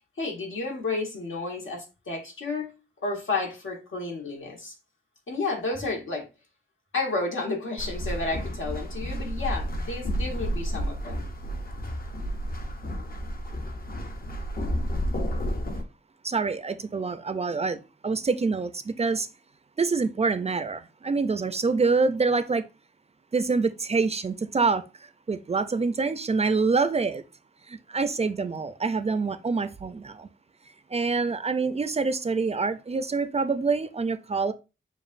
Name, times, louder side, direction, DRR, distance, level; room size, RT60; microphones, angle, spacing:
voice 1, 0.2-2.7 3.0-4.7 5.3-6.3 6.9-11.2, left 3 dB, 85° left, 1.4 m, -31 dB
sound 1, 7.8-15.8, equal, 50° left, 0.7 m, -31 dB
voice 2, 16.2-19.3 19.8-22.6 23.3-27.2 27.7-30.3 30.9-34.5, right 4 dB, 35° right, 0.4 m, -26 dB
7.1 x 2.5 x 2.5 m
wide cardioid pair, 115°, 20 cm